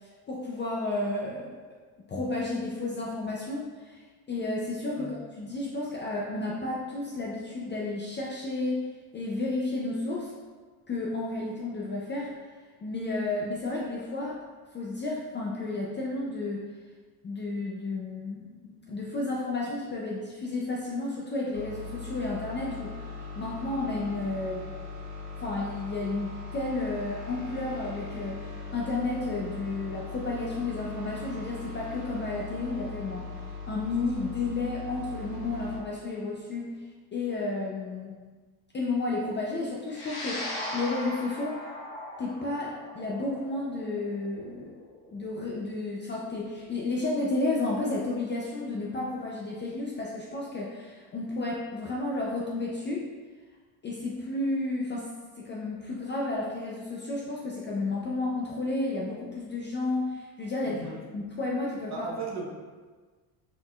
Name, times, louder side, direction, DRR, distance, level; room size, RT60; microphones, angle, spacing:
voice 1, 0.0-1.5 2.1-8.9 9.1-10.3 10.9-12.3 12.8-14.4 14.7-16.7 17.2-24.6 25.4-33.3 33.7-36.7 37.1-38.1 38.7-40.5 40.7-41.6 42.2-44.7 45.1-53.1 53.8-55.1 55.4-60.8 61.1-62.1, left 2 dB, 25° left, -3 dB, 0.4 m, -32 dB
sound 1, 21.5-35.8, left 4 dB, 80° right, 1.4 m, -40 dB
sound 2, 39.9-48.4, left 1 dB, 50° left, 1.4 m, -40 dB
voice 2, 60.6-61.0 61.9-62.4, right 4 dB, 35° right, -2 dB, 0.9 m, -36 dB
4.1 x 3.8 x 2.3 m, 1.4 s
supercardioid pair, 105°, 48 cm